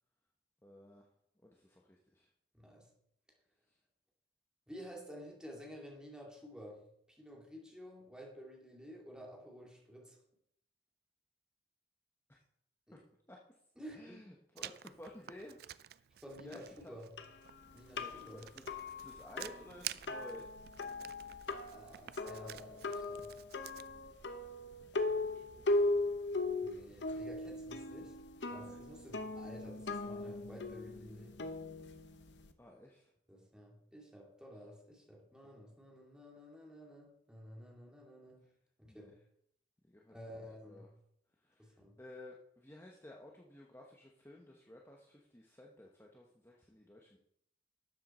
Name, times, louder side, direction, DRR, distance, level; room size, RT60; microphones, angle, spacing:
voice 1, 0.6-1.1 1.4-2.3 3.7-3.8 12.3-12.4 12.9-13.0 13.3-13.4 13.9-15.6 16.0-16.1 16.4-17.0 17.9-18.7 19.0-20.5 24.8-25.9 28.5-28.8 32.6-33.1 38.3-38.5 38.9-39.1 39.8-40.1 40.7-40.9 41.4-47.2, left 1 dB, 15° left, -1 dB, 1.0 m, -54 dB
voice 2, 2.5-2.9 4.7-10.2 12.9-13.0 13.8-14.3 16.2-17.1 17.7-18.5 21.7-23.4 26.6-31.4 33.3-38.5 38.8-39.2 40.1-40.9 41.6-42.0, equal, 5° right, -1 dB, 2.3 m, -52 dB
Writing, 14.6-23.9, right 13 dB, 60° right, 0.4 m, -50 dB
sound 1, 17.2-32.5, left 2 dB, 75° left, 0.9 m, -39 dB
12.5 x 7.6 x 4.3 m, 0.73 s
head